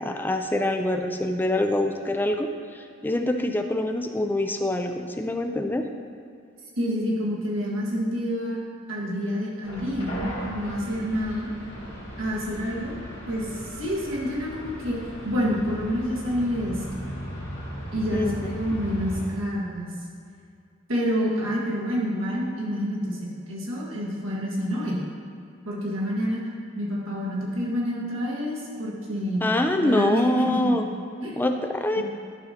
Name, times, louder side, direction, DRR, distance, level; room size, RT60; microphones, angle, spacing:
voice 1, 0.0-5.8 18.1-18.3 29.4-30.8 31.3-32.0, left 1 dB, 10° left, 5 dB, 0.3 m, -25 dB
voice 2, 6.8-8.6 8.9-11.5 12.2-13.0 13.3-17.0 17.9-19.9 20.9-25.0 25.6-26.5 26.7-29.4 29.8-30.7 31.2-31.4 32.0-32.1, equal, 90° right, -4 dB, 1.5 m, -28 dB
sound 1, 9.6-19.3, equal, 60° left, 1.9 m, -37 dB
9.7 x 6.3 x 2.8 m, 2.4 s
head